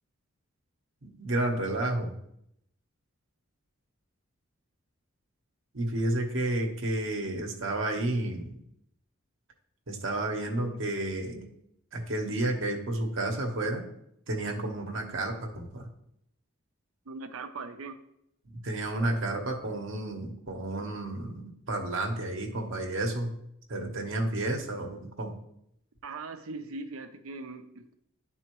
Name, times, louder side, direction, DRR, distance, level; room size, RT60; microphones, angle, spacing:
voice 1, 1.0-2.1 5.7-8.5 9.9-11.4 11.9-13.8 14.3-15.9 18.6-23.3 23.7-25.4, right 1 dB, 65° right, 2 dB, 1.1 m, -31 dB
voice 2, 17.1-18.0 26.0-27.9, right 3 dB, 80° right, 7 dB, 0.7 m, -40 dB
11.0 x 4.2 x 3.0 m, 0.75 s
head